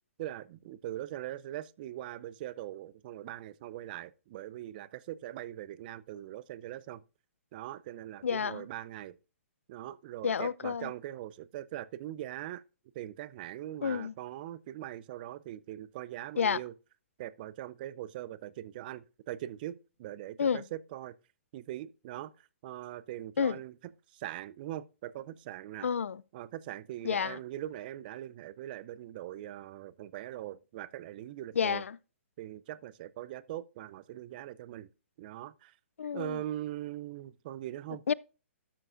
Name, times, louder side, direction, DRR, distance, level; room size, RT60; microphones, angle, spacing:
voice 1, 0.2-7.0 7.5-9.2 9.7-12.6 12.9-16.7 17.2-21.2 21.5-23.7 24.1-25.9 26.3-31.8 32.4-34.9 35.2-35.7 36.1-38.0, right 13 dB, 40° right, 0.5 m, -41 dB
voice 2, 8.2-8.6 10.2-10.9 13.8-14.1 16.4-16.6 20.4-20.6 23.4-23.6 25.8-26.2 27.0-27.4 31.6-32.0 36.0-36.4 38.1-38.2, left 7 dB, 80° left, 0.4 m, -30 dB
12.5 x 7.5 x 2.5 m
hypercardioid pair, 130°, 7 cm